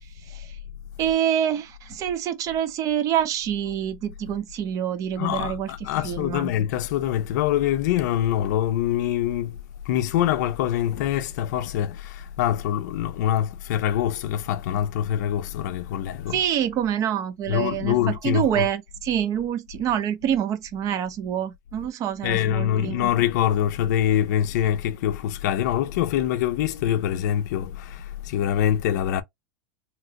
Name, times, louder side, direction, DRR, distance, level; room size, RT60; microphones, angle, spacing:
voice 1, 1.0-5.7 6.0-6.5 16.3-23.1, right 10 dB, 35° right, 0.6 m, -26 dB
voice 2, 5.2-9.6 9.9-16.4 17.5-18.7 22.2-29.2, left 11 dB, 65° left, 0.5 m, -24 dB
2.9 x 2.5 x 2.8 m
supercardioid pair, 135°, 10 cm